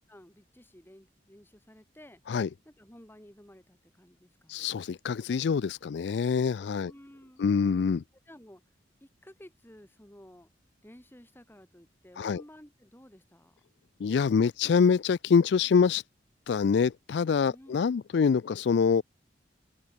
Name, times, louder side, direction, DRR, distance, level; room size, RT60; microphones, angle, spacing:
voice 1, 0.1-2.2 2.6-4.7 6.6-7.5 8.3-8.6 9.0-10.5 10.8-13.6 17.4-17.9, equal, 10° left, 2.5 m, -54 dB
voice 2, 4.5-6.9 7.4-8.0 12.2-12.4 14.0-16.0 16.5-19.0, left 6 dB, 65° left, 0.4 m, -25 dB
head